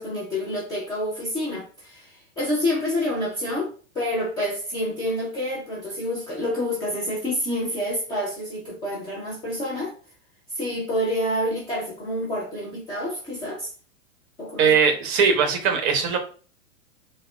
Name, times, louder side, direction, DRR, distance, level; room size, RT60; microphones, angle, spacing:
voice 1, 0.0-10.0 10.5-13.7 14.4-14.7, left 1 dB, 10° left, 0.3 m, -28 dB
voice 2, 14.6-16.2, right 6 dB, 30° right, 0.6 m, -20 dB
3.4 x 2.1 x 2.3 m
figure-of-eight pair, 100°, 40 cm